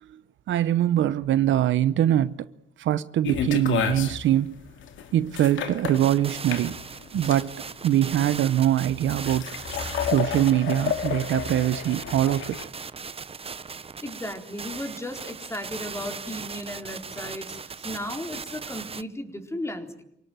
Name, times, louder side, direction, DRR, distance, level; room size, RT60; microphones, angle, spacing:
voice 1, 0.5-2.5 2.8-4.5 5.1-6.8 7.1-7.5 7.8-9.5 10.0-12.6, right 12 dB, 75° right, 0.9 m, -23 dB
sound 1, 3.2-12.6, left 8 dB, 75° left, 2.5 m, -31 dB
sound 2, 5.9-19.0, right 5 dB, 30° right, 0.9 m, -38 dB
voice 2, 14.0-20.0, left 1 dB, 15° left, 4.1 m, -35 dB
27.5 x 18.0 x 9.2 m
cardioid pair, 90°, 20 cm